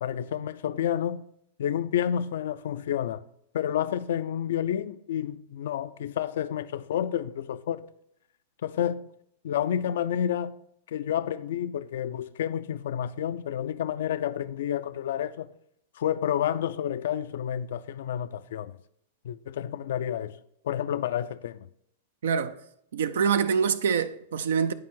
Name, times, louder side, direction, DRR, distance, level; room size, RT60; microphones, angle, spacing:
voice 1, 0.0-1.2 1.6-3.2 3.5-7.9 8.6-9.1 9.4-10.6 10.9-15.5 16.0-18.8 19.2-20.4 20.6-21.7, left 10 dB, 70° left, 0.3 m, -30 dB
voice 2, 22.2-22.6 22.9-24.7, right 6 dB, 75° right, 0.4 m, -25 dB
9.6 x 4.3 x 3.7 m
hypercardioid pair, 110°, 0 cm